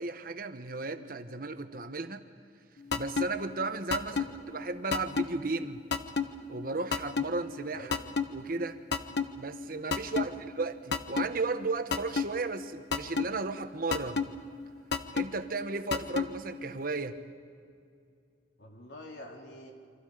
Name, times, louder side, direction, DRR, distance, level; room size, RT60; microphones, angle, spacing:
voice 1, 0.0-2.2 2.9-5.8 6.5-8.0 8.3-8.8 9.4-14.3 15.1-17.2, right 3 dB, 55° right, 9 dB, 1.2 m, -34 dB
sound 1, 2.9-3.3 3.9-4.3 4.9-5.3 5.9-6.3 6.9-7.3 7.9-8.3 8.9-9.3 9.9-10.3 10.9-11.3 11.9-12.3 12.9-13.3 13.9-14.3 14.9-15.3 15.9-16.3, left 5 dB, 70° left, 1.2 m, -27 dB
voice 2, 18.6-19.7, left 1 dB, 85° left, 1 dB, 3.8 m, -47 dB
28.5 x 25.5 x 5.1 m, 2.3 s
head